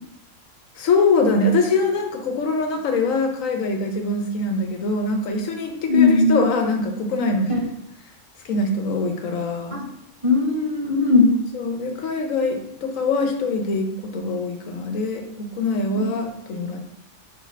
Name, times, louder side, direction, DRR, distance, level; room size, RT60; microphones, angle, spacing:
voice 1, 0.8-7.5 8.4-9.8 11.5-16.8, left 3 dB, 85° left, 4 dB, 1.3 m, -23 dB
voice 2, 5.8-6.4 7.5-7.6 9.7-9.8 10.2-11.3 15.9-16.0, left 3 dB, 25° right, -2 dB, 1.0 m, -18 dB
4.7 x 4.7 x 4.5 m, 0.76 s
omnidirectional pair, 1.3 m